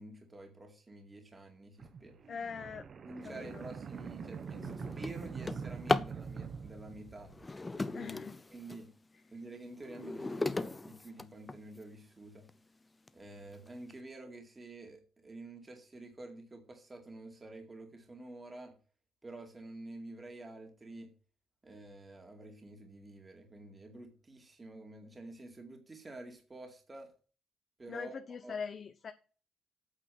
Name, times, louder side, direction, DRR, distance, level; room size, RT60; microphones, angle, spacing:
voice 1, 0.0-2.2 3.0-7.3 7.7-8.2 8.5-8.9 9.3-12.5 13.1-18.8 19.2-21.1 21.6-27.1 27.8-28.5, right 2 dB, 20° right, 2.3 m, -49 dB
sound 1, 1.8-7.7, right 6 dB, 40° right, 1.0 m, -44 dB
voice 2, 2.3-2.9 3.2-3.7 7.9-8.4 27.9-29.1, left 6 dB, 40° left, 0.9 m, -42 dB
Drawer open or close, 3.5-3.7 4.2-6.2 7.3-8.9 9.4-11.8 12.5-12.6 13.1-13.2 13.5-13.9, left 2 dB, 15° left, 0.6 m, -37 dB
8.8 x 6.6 x 7.8 m
cardioid pair, 150°, 0 cm